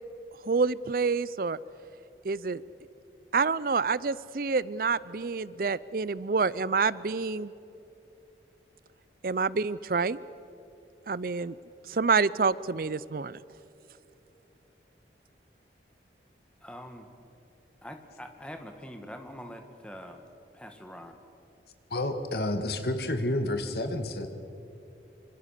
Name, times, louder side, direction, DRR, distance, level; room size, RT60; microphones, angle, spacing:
voice 1, 0.5-1.6 2.2-2.6 3.3-7.5 9.2-10.2 11.1-11.6 11.9-13.4, right 4 dB, 50° right, 19 dB, 0.5 m, -27 dB
voice 2, 16.6-17.1 17.8-20.3 20.5-21.2, equal, 5° left, 5 dB, 1.9 m, -44 dB
voice 3, 21.9-24.3, left 1 dB, 60° left, 8 dB, 2.0 m, -30 dB
26.0 x 26.0 x 6.7 m, 3.0 s
head